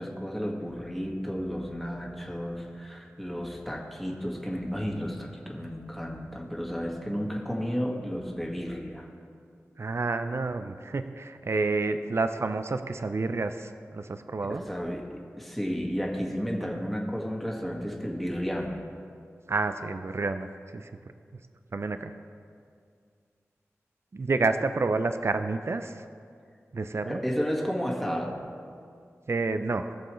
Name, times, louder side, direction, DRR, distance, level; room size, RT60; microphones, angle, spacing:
voice 1, 0.0-9.1 14.5-18.9 27.1-28.4, equal, ahead, -2 dB, 1.8 m, -32 dB
voice 2, 9.8-14.6 19.5-20.5 20.7-20.9 21.7-22.1 24.1-26.0 26.7-27.2 29.3-29.9, right 3 dB, 55° right, 9 dB, 0.5 m, -29 dB
19.5 x 6.8 x 3.2 m, 2.3 s
wide cardioid pair, 55°, 5 cm